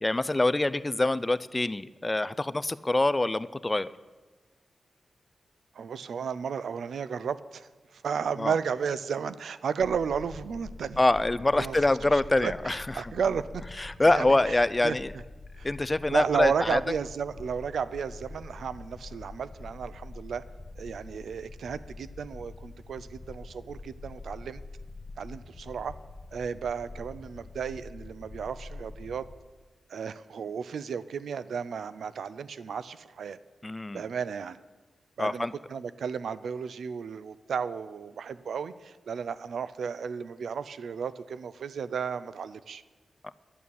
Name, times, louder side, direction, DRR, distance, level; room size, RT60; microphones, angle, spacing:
voice 1, 0.0-3.9 8.4-8.5 11.0-12.8 13.8-15.1 15.6-16.8 33.6-34.0 35.2-35.5, left 2 dB, 20° left, 15 dB, 0.4 m, -25 dB
voice 2, 5.7-11.0 11.6-11.8 12.0-13.5 14.1-14.6 14.8-15.0 15.6-15.7 16.1-20.4 20.8-24.6 25.2-25.9 26.3-29.3 29.9-33.4 33.9-34.6 35.2-42.8, right 6 dB, 90° right, 15 dB, 0.5 m, -33 dB
sound 1, 9.8-29.4, left 3 dB, 40° left, 1.2 m, -45 dB
11.0 x 8.4 x 8.5 m, 1.3 s
wide cardioid pair, 100°, 0 cm